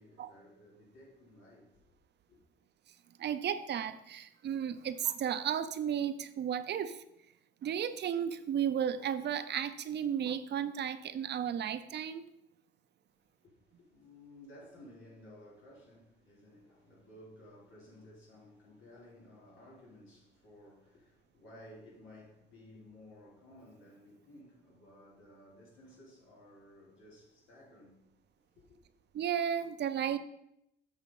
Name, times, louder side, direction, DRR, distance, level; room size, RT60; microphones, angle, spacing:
voice 1, 0.0-2.0 2.3-2.4 13.1-28.1 28.7-28.8, left 1 dB, 85° left, 3.5 m, -56 dB
voice 2, 3.2-7.0 7.6-12.3 29.1-30.2, right 9 dB, 60° right, 0.6 m, -34 dB
7.4 x 5.5 x 5.3 m
cardioid pair, 90°, 20 cm